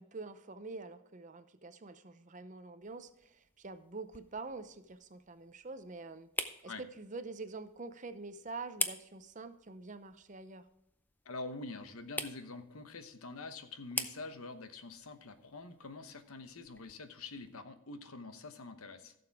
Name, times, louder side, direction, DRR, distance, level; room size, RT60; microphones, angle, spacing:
voice 1, 0.0-10.7, right 3 dB, 35° right, 11 dB, 0.6 m, -46 dB
sound 1, 2.8-17.6, left 3 dB, 10° left, 0.5 m, -46 dB
voice 2, 11.2-19.1, left 3 dB, 90° left, 9 dB, 1.0 m, -46 dB
15.0 x 6.9 x 3.5 m, 0.83 s
head